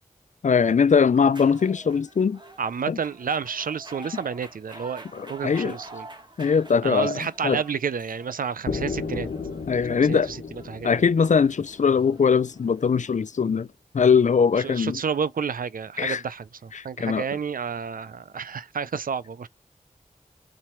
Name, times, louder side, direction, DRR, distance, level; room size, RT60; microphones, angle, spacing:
voice 1, 0.4-2.4 2.9-3.0 5.1-5.8 6.4-7.6 9.7-10.3 10.8-13.7 13.9-15.0 16.0-16.2 16.7-17.2, left 6 dB, 60° left, 0.5 m, -21 dB
sound 1, 1.3-13.3, right 1 dB, 30° right, 1.6 m, -47 dB
voice 2, 2.6-6.1 6.8-9.3 9.9-10.4 10.7-10.9 14.6-19.5, right 6 dB, 80° right, 0.5 m, -30 dB
sound 2, 8.7-12.6, left 4 dB, 90° left, 1.2 m, -34 dB
6.2 x 4.1 x 4.5 m
cardioid pair, 40°, 14 cm